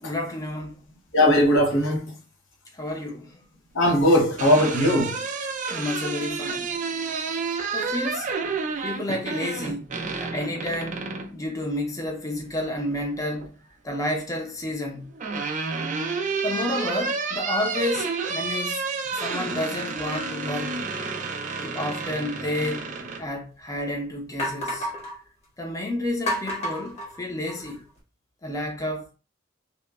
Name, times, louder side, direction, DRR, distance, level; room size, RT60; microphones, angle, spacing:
voice 1, 0.0-0.8 2.7-3.3 5.7-6.7 7.7-8.3 8.8-9.9 10.2-13.6 13.8-15.1 16.4-18.8 19.1-20.8 21.6-24.9 25.6-27.8 28.4-29.1, left 1 dB, 15° left, 0.6 m, -30 dB
voice 2, 1.1-2.1 3.7-5.2, left 1 dB, 75° left, 0.6 m, -19 dB
sound 1, 4.4-11.3 12.8-13.5 14.7-23.2, right 4 dB, 40° right, 0.3 m, -30 dB
sound 2, 23.0-23.1 23.7-23.8 24.4-25.2 26.3-27.8, equal, 35° left, 1.0 m, -30 dB
2.9 x 2.1 x 2.3 m
head